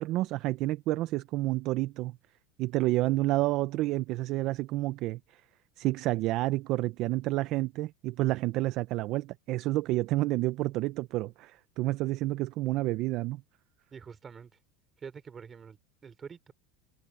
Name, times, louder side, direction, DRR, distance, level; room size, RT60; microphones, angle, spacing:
voice 1, 0.0-2.2 2.6-5.4 5.8-13.4, right 18 dB, 40° right, 0.5 m, -29 dB
voice 2, 13.9-14.5 15.0-16.5, right 6 dB, 15° right, 3.1 m, -46 dB
supercardioid pair, 170°, 0 cm